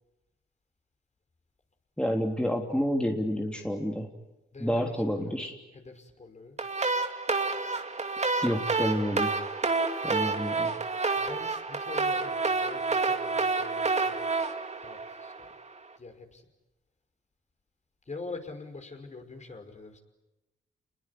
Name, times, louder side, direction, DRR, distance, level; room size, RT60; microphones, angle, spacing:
voice 1, 2.0-4.1 4.6-5.6 8.4-9.3 10.0-10.7, equal, 5° left, 2 dB, 3.3 m, -29 dB
voice 2, 4.5-5.4 5.7-6.6 11.2-14.2 14.8-15.5 16.0-16.5 18.1-20.0, left 3 dB, 35° left, 5 dB, 5.5 m, -44 dB
sound 1, 6.6-15.7, right 4 dB, 35° right, 2.6 m, -29 dB
28.5 x 21.5 x 9.8 m, 0.98 s
supercardioid pair, 55°, 20 cm